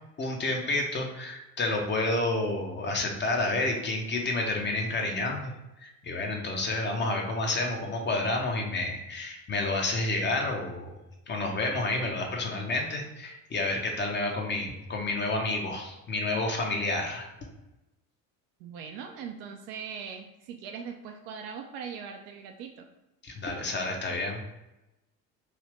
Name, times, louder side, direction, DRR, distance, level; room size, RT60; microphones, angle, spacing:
voice 1, 0.2-5.5 5.8-11.0 11.3-17.3 23.2-24.4, left 2 dB, 25° left, 1 dB, 0.7 m, -30 dB
voice 2, 18.6-22.9, right 6 dB, 50° right, 4 dB, 0.5 m, -40 dB
3.3 x 2.8 x 3.1 m, 0.96 s
figure-of-eight pair, 60°, 49 cm